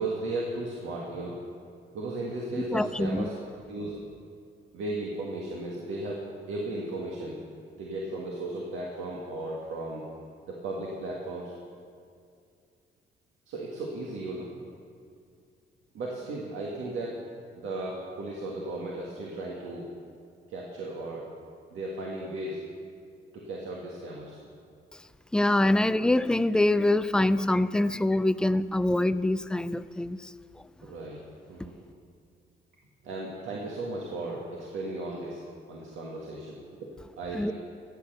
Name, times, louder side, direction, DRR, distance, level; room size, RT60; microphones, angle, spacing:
voice 1, 0.0-1.4 1.9-3.4 3.7-4.0 4.7-7.4 7.7-10.0 10.5-11.5 13.5-14.5 15.9-17.2 17.5-19.9 20.5-21.3 21.7-22.6 23.3-24.4 30.8-31.2 31.5-31.9 33.0-35.4 35.7-37.5, right 2 dB, 80° right, -3 dB, 1.7 m, -35 dB
voice 2, 2.7-3.3 25.3-30.3 37.3-37.5, left 1 dB, 5° left, 14 dB, 0.3 m, -24 dB
13.5 x 8.3 x 6.7 m, 2.3 s
cardioid pair, 90°, 20 cm